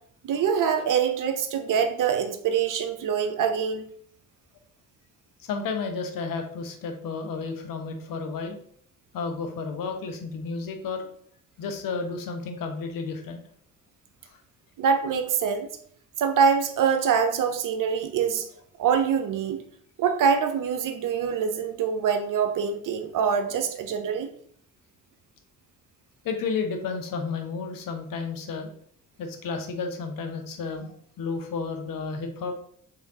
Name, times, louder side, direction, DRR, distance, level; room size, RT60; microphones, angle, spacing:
voice 1, 0.2-3.8 14.8-15.7 16.2-18.5 18.8-19.6 20.0-24.3, right 7 dB, 50° right, 7 dB, 0.6 m, -24 dB
voice 2, 5.4-8.6 9.1-11.0 11.6-13.4 26.2-28.7 29.2-32.5, left 4 dB, 50° left, 5 dB, 0.8 m, -32 dB
3.5 x 3.3 x 2.7 m, 0.62 s
hypercardioid pair, 45°, 42 cm